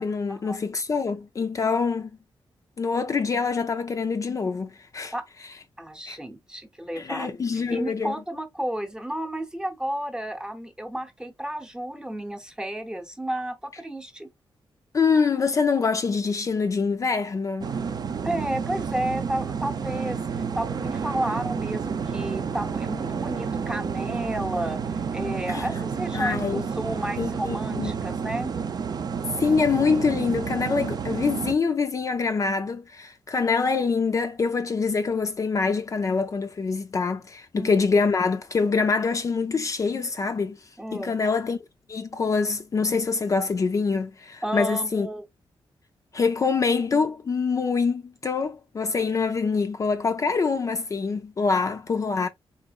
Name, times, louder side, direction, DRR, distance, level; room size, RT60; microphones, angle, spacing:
voice 1, 0.0-2.1 2.8-5.1 6.1-6.2 7.0-8.1 14.9-17.7 25.5-25.7 26.1-26.7 27.2-27.9 29.4-40.6 40.9-41.6 41.9-45.1 46.1-52.3, left 4 dB, 35° left, 0.4 m, -25 dB
voice 2, 5.8-14.3 18.2-28.5 37.5-37.7 40.8-41.2 44.4-45.2, right 1 dB, 10° right, 0.8 m, -32 dB
sound 1, 17.6-31.6, right 6 dB, 45° right, 0.6 m, -30 dB
4.3 x 3.8 x 2.4 m
wide cardioid pair, 150°, 9 cm